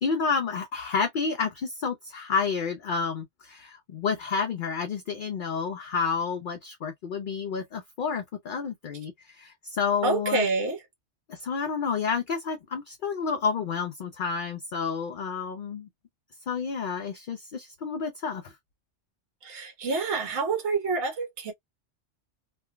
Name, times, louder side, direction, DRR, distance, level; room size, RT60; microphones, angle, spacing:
voice 1, 0.0-10.5 11.3-15.9 16.5-18.5, left 5 dB, 55° left, 0.6 m, -30 dB
voice 2, 10.0-10.8 19.4-21.5, right 4 dB, 70° right, 1.2 m, -27 dB
3.3 x 2.2 x 2.2 m
omnidirectional pair, 1.3 m